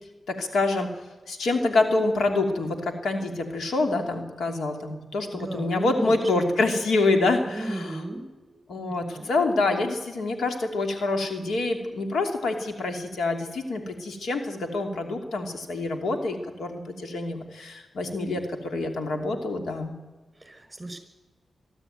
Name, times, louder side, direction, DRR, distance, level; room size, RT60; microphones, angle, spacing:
voice 1, 0.3-0.9 1.3-7.9 8.7-19.9, left 2 dB, 85° left, 4 dB, 2.7 m, -26 dB
voice 2, 5.3-6.2 6.5-6.6 7.5-8.6 8.9-9.3 20.4-21.0, right 1 dB, 15° right, 7 dB, 5.2 m, -36 dB
24.0 x 12.5 x 9.2 m, 1.2 s
cardioid pair, 85°, 0 cm